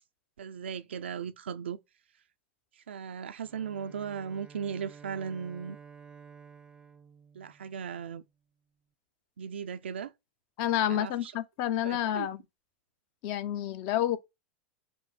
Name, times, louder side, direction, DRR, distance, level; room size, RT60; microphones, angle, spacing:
voice 1, 0.4-1.8 2.9-5.8 7.3-8.2 9.4-10.1 10.9-11.3 11.8-12.3, right 7 dB, 90° right, 0.4 m, -37 dB
Bowed string instrument, 3.4-8.2, right 6 dB, 15° right, 0.5 m, -52 dB
voice 2, 10.6-12.4 13.2-14.2, left 11 dB, 55° left, 0.6 m, -29 dB
5.1 x 2.1 x 4.1 m
hypercardioid pair, 105°, 6 cm